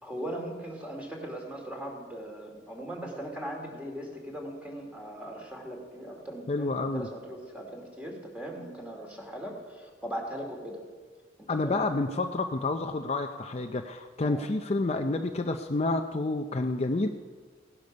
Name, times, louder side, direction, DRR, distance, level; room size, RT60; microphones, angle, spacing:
voice 1, 0.0-10.8 11.4-11.9 14.2-14.5, right 1 dB, 5° right, 0 dB, 2.6 m, -39 dB
voice 2, 6.5-7.1 11.5-17.1, left 2 dB, 35° left, 6 dB, 0.5 m, -29 dB
17.0 x 12.0 x 5.3 m, 1.5 s
head